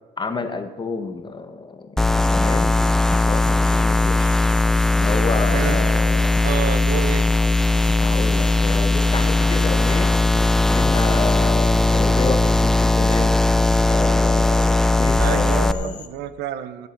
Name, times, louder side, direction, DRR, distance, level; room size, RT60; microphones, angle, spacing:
voice 1, 0.2-2.0 2.3-2.8 3.2-4.3 4.9-6.5 7.9-10.1 10.7-13.4 13.9-16.0, left 4 dB, 25° left, 8 dB, 1.3 m, -29 dB
sound 1, 2.0-15.7, left 2 dB, 5° left, 0.5 m, -18 dB
Frog, 2.2-16.1, left 7 dB, 45° left, 1.5 m, -42 dB
voice 2, 6.4-7.2 15.2-16.9, right 11 dB, 80° right, 13 dB, 0.7 m, -29 dB
16.0 x 8.1 x 6.0 m, 1.3 s
cardioid pair, 110°, 17 cm